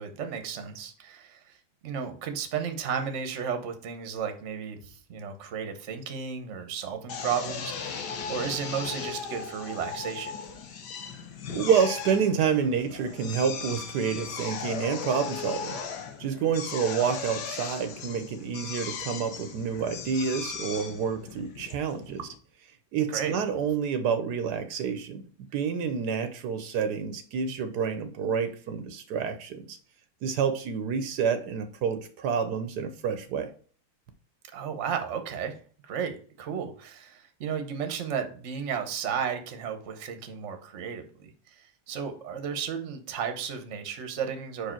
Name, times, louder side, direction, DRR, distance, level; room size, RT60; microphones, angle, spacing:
voice 1, 0.0-1.6 1.8-10.4 23.1-23.4 34.5-35.6 35.8-44.7, right 7 dB, 50° right, 7 dB, 1.1 m, -34 dB
Drill, 7.1-22.4, left 6 dB, 85° left, 1.5 m, -37 dB
voice 2, 11.5-15.8 16.2-22.2 22.9-25.2 25.5-29.8 30.2-33.5, right 6 dB, 80° right, 9 dB, 1.2 m, -28 dB
5.0 x 4.8 x 4.4 m, 0.44 s
omnidirectional pair, 1.8 m